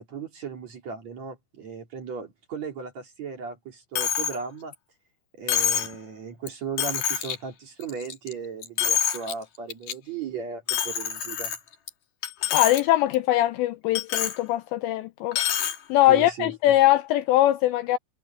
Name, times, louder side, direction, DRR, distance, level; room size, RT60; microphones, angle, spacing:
voice 1, 0.0-4.7 5.4-11.5 16.1-16.5, right 6 dB, 40° right, 3.2 m, -36 dB
Coin (dropping), 4.0-4.4 4.7-4.8 5.5-6.0 6.5-6.6 6.8-7.4 7.8-8.3 8.6-9.3 9.7-9.9 10.7-11.9 12.2-12.8 13.1-13.2 14.0-14.4 15.3-15.8, left 9 dB, 50° left, 3.0 m, -26 dB
voice 2, 12.5-15.4 15.9-18.0, left 14 dB, 85° left, 2.5 m, -21 dB
omnidirectional pair, 5.8 m